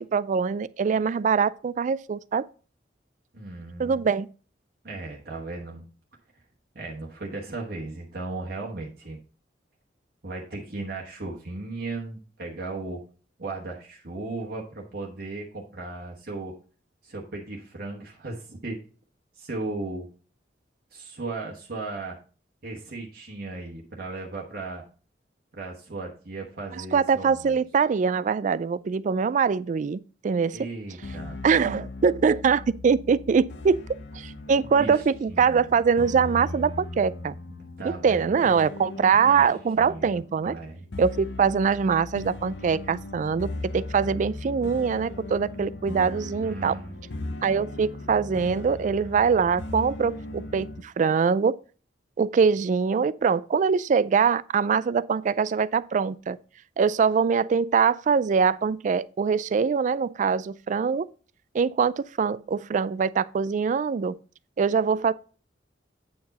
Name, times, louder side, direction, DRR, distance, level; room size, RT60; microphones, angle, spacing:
voice 1, 0.0-2.4 3.8-4.3 26.7-30.6 31.4-33.8 34.1-37.3 37.8-40.5 41.0-46.8 47.4-51.6 52.2-56.4 56.8-61.1 61.5-64.1 64.6-65.1, right 6 dB, 45° right, 0.3 m, -23 dB
voice 2, 3.3-4.1 4.8-5.8 6.7-9.2 10.2-13.0 13.4-16.5 17.0-18.8 19.3-20.1 20.9-22.1 22.6-24.8 25.5-27.6 30.5-31.4 34.8-35.8 37.5-38.4 39.3-39.5 39.8-40.9 46.4-47.0, right 2 dB, 60° right, 1.2 m, -36 dB
sound 1, 31.0-50.8, left 2 dB, 75° left, 0.8 m, -38 dB
8.5 x 4.6 x 4.1 m
head